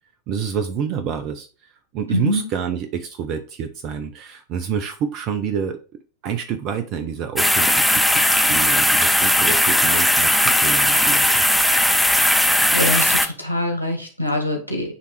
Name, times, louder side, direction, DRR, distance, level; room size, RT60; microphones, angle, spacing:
voice 1, 0.3-1.5 1.9-5.8 6.2-11.4, right 7 dB, 40° right, 8 dB, 0.6 m, -28 dB
voice 2, 2.1-2.4 12.6-15.0, left 1 dB, 85° right, 3 dB, 1.7 m, -24 dB
sound 1, 7.4-13.3, left 1 dB, ahead, 0.6 m, -17 dB
9.2 x 3.3 x 3.3 m, 0.38 s
figure-of-eight pair, 90°, 0 cm